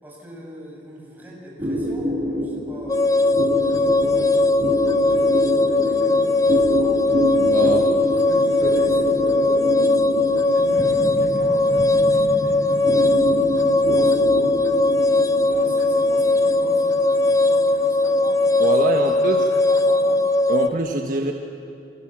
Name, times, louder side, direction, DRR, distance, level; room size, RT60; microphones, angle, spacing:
voice 1, 0.0-3.3 3.7-7.1 7.6-7.9 8.3-9.9 10.4-13.2 13.5-14.6 15.4-18.5 18.9-20.3, equal, 10° right, -3 dB, 6.9 m, -42 dB
sound 1, 1.6-20.4, equal, 30° right, 5.3 m, -28 dB
sound 2, 2.9-20.7, left 2 dB, 20° left, 0.7 m, -19 dB
voice 2, 7.4-7.9 18.6-19.5 20.5-21.3, right 1 dB, 50° right, 3 dB, 1.4 m, -24 dB
29.5 x 24.0 x 7.5 m, 2.6 s
head